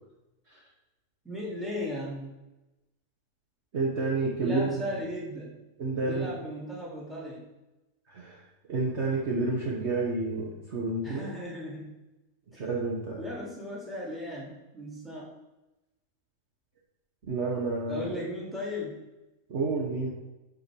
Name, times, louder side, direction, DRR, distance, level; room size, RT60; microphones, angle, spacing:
voice 1, 1.2-2.3 4.4-5.6 6.0-7.5 11.0-12.0 12.5-12.6 13.2-15.3 17.9-19.0, left 1 dB, ahead, -4 dB, 2.1 m, -36 dB
voice 2, 3.7-4.8 5.8-6.3 8.1-8.4 8.7-11.2 12.6-13.2 17.3-18.1 19.5-20.1, right 3 dB, 50° right, -3 dB, 1.3 m, -29 dB
5.9 x 5.2 x 6.1 m, 1.0 s
omnidirectional pair, 1.6 m